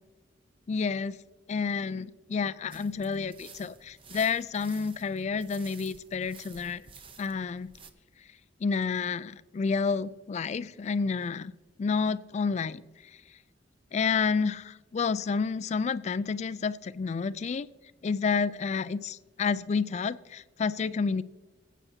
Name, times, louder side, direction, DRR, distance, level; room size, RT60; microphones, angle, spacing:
voice 1, 0.7-1.2 1.5-6.8 7.2-7.7 8.6-11.5 11.8-12.8 13.9-17.7 18.0-21.2, left 5 dB, 35° left, 16 dB, 0.3 m, -30 dB
sound 1, 2.7-7.9, right 5 dB, 30° right, 0.7 m, -52 dB
23.5 x 8.3 x 2.8 m, 1.3 s
head